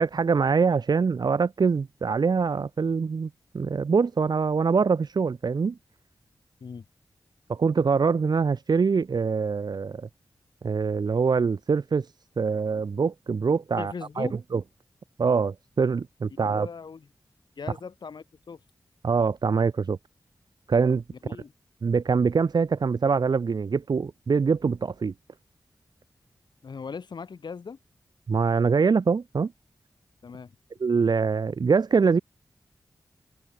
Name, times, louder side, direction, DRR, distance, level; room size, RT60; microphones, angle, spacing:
voice 1, 0.0-5.8 7.5-10.1 10.6-14.6 15.2-16.7 19.0-20.0 20.7-21.0 21.8-25.1 28.3-29.5 30.8-32.2, right 5 dB, 70° right, 1.5 m, -24 dB
voice 2, 13.8-14.3 16.3-17.0 17.6-18.6 21.2-21.5 26.6-27.8 30.2-30.5, left 5 dB, 75° left, 5.0 m, -39 dB
wide cardioid pair, 70°, 8 cm